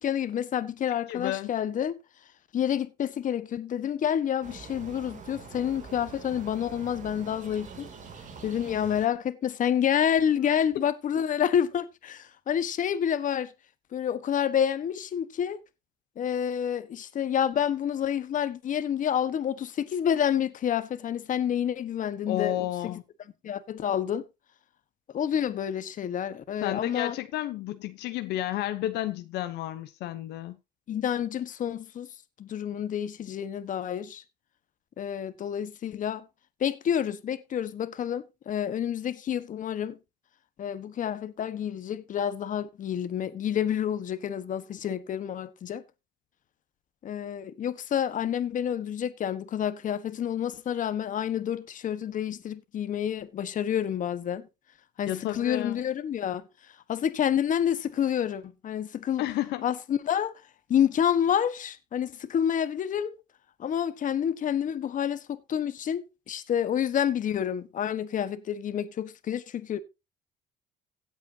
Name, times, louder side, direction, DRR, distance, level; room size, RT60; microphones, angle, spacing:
voice 1, 0.0-1.9 2.5-7.9 8.4-13.5 13.9-15.6 16.2-23.0 23.4-24.2 25.1-27.1 30.9-32.1 32.4-34.2 35.0-36.3 36.6-40.0 40.6-45.8 47.0-54.5 55.0-56.5 56.9-59.2 59.6-60.3 60.7-63.1 63.6-69.8, left 9 dB, 50° left, 1.4 m, -28 dB
voice 2, 1.1-1.5 22.3-23.0 26.6-30.6 55.1-55.8 59.2-59.7, left 14 dB, 80° left, 1.0 m, -31 dB
sound 1, 4.4-9.1, right 5 dB, 50° right, 3.0 m, -45 dB
16.5 x 8.3 x 2.9 m
cardioid pair, 110°, 17 cm